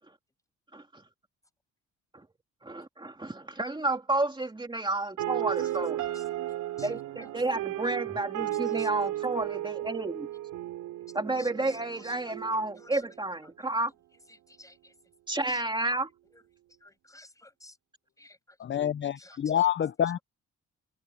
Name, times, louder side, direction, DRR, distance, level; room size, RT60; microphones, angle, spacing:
voice 1, 2.6-6.0 6.8-10.3 11.1-13.9 15.3-16.1, right 2 dB, 15° right, 2.9 m, -31 dB
sound 1, 5.2-13.2, right 13 dB, 85° right, 3.8 m, -34 dB
voice 2, 5.6-6.2 6.8-6.9 7.2-7.3 8.4-8.9 11.4-12.1 12.4-13.0 14.3-14.9 15.4-15.6 16.8-17.8 18.2-18.6 19.2-19.7, left 2 dB, 10° left, 7.2 m, -53 dB
voice 3, 18.6-20.2, left 10 dB, 40° left, 0.7 m, -27 dB
cardioid pair, 90°, 30 cm